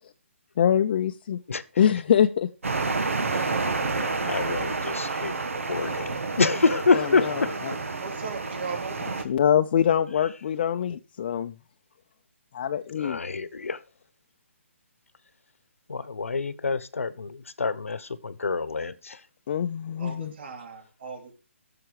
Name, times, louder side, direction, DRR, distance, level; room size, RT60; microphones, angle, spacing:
voice 1, 0.6-1.4 1.8-2.5 9.3-11.5 12.5-13.2 19.5-20.3, left 9 dB, 45° left, 0.6 m, -23 dB
sound 1, 2.6-9.2, right 3 dB, 85° right, 1.7 m, -29 dB
voice 2, 3.9-5.3 5.7-7.6 12.9-13.8 15.9-19.3, left 4 dB, 90° left, 1.1 m, -27 dB
voice 3, 8.0-9.0 20.0-21.3, right 5 dB, 50° right, 3.4 m, -37 dB
13.5 x 6.8 x 4.9 m
hypercardioid pair, 155°, 7 cm